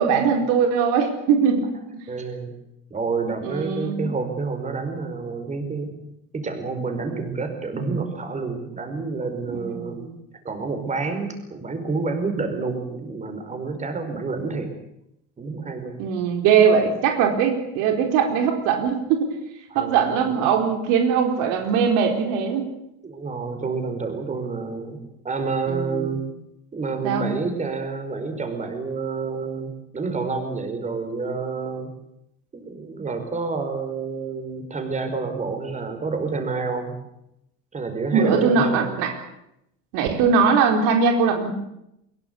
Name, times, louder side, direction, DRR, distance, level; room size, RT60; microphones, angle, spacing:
voice 1, 0.0-1.7 3.4-4.1 9.5-10.2 16.0-19.3 19.7-22.7 25.7-26.2 27.0-27.3 38.1-39.2 39.9-41.5, right 6 dB, 80° right, 4 dB, 4.2 m, -21 dB
voice 2, 2.1-2.5 2.9-6.0 6.3-10.0 10.5-14.7 15.4-16.0 19.7-20.4 23.0-25.0 25.2-26.2 26.7-31.9 32.5-37.0 37.7-39.1, right 4 dB, 25° right, 7 dB, 5.1 m, -29 dB
22.5 x 22.0 x 8.4 m, 0.80 s
cardioid pair, 145°, 31 cm